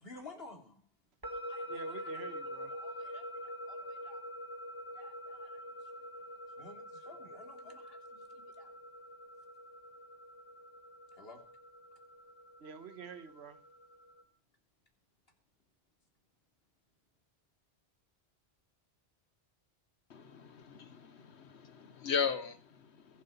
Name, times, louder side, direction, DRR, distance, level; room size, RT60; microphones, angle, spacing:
voice 1, 0.0-0.8 1.3-1.8 2.7-3.2 3.7-4.2 4.9-5.5 6.6-8.0 8.6-8.7 11.2-11.4, left 2 dB, 60° left, 3.2 m, -53 dB
sound 1, 1.2-14.2, equal, 20° right, 2.0 m, -46 dB
voice 2, 1.7-2.7 12.6-13.6, right 6 dB, 70° right, 1.4 m, -48 dB
voice 3, 20.1-23.2, left 6 dB, 80° left, 1.3 m, -37 dB
21.5 x 8.0 x 5.5 m
omnidirectional pair, 1.1 m